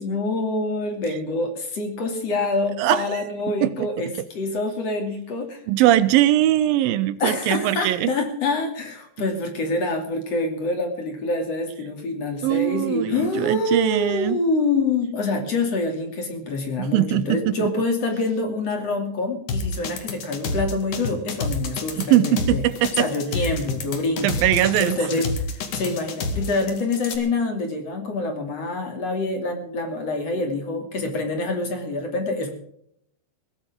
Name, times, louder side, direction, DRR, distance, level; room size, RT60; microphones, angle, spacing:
voice 1, 0.0-5.6 7.2-22.6 23.0-24.3 24.8-32.5, left 2 dB, 45° left, 4 dB, 3.6 m, -26 dB
voice 2, 2.8-3.9 5.7-8.1 12.4-14.4 16.8-17.7 22.0-23.1 24.2-25.3, right 13 dB, 80° right, 15 dB, 2.5 m, -21 dB
sound 1, 19.5-27.2, left 3 dB, 60° left, 3.5 m, -29 dB
21.5 x 15.5 x 3.7 m, 0.68 s
omnidirectional pair, 4.2 m